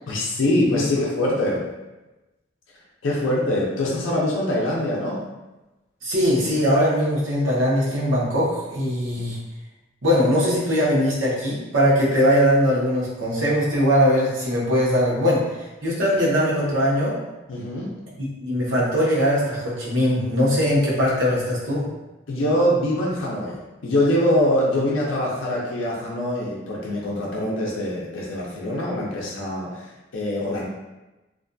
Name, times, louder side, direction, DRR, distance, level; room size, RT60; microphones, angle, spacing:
voice 1, 0.1-1.6 3.0-5.2 9.1-9.2 17.5-17.9 22.3-30.7, left 1 dB, 85° left, -4 dB, 0.5 m, -24 dB
voice 2, 6.0-9.4 10.0-15.5 15.8-17.2 18.4-21.8, equal, 90° right, -6 dB, 0.8 m, -20 dB
2.5 x 2.2 x 2.5 m, 1.1 s
head